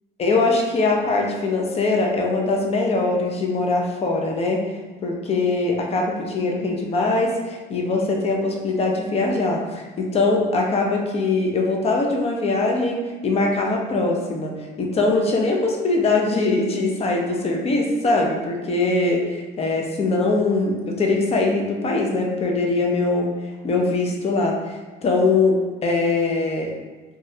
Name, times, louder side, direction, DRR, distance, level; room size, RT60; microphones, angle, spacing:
voice 1, 0.2-4.6 5.0-23.3 23.6-26.7, left 3 dB, 35° left, 0 dB, 0.5 m, -22 dB
3.0 x 2.3 x 2.6 m, 1.3 s
cardioid pair, 110°, 17 cm